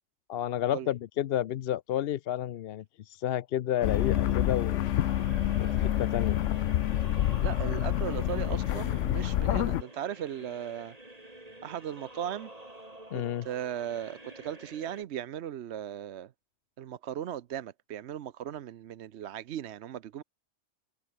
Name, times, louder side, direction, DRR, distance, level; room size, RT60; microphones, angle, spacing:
voice 1, 0.3-4.9 5.6-6.5 13.1-13.5, left 11 dB, 65° left, 0.7 m, -31 dB
sound 1, 3.7-15.0, right 1 dB, 30° right, 5.2 m, -48 dB
sound 2, 3.8-9.8, left 12 dB, 85° left, 1.0 m, -27 dB
voice 2, 7.4-10.9 11.6-12.5 13.1-16.3 16.8-20.2, right 10 dB, 70° right, 0.9 m, -37 dB
omnidirectional pair, 1.2 m